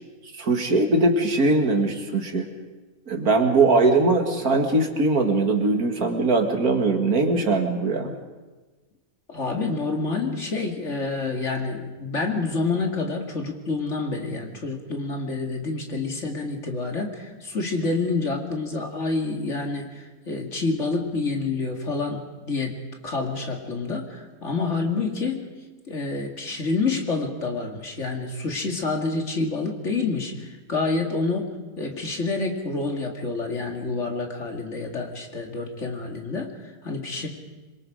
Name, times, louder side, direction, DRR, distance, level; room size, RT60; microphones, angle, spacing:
voice 1, 0.4-2.5 3.1-8.1, right 3 dB, 70° right, 4 dB, 2.6 m, -21 dB
voice 2, 9.3-22.8 23.0-25.5 25.9-31.5 31.8-37.3, left 3 dB, 50° left, 2 dB, 2.6 m, -28 dB
26.0 x 23.5 x 5.0 m, 1.2 s
omnidirectional pair, 1.6 m